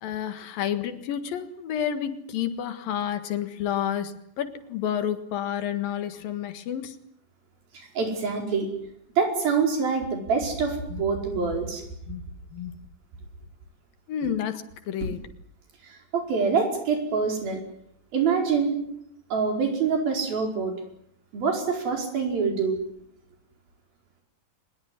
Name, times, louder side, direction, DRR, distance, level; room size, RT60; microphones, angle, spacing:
voice 1, 0.0-7.0 10.9-11.0 11.3-11.5 12.1-12.3 12.5-12.8 14.1-15.2, left 9 dB, 75° left, 10 dB, 3.4 m, -30 dB
voice 2, 7.7-8.7 9.2-11.8 15.8-17.6 18.1-18.8 19.3-20.7 21.3-22.8, right 5 dB, 75° right, 3 dB, 6.7 m, -25 dB
24.0 x 21.0 x 9.7 m, 0.73 s
omnidirectional pair, 4.2 m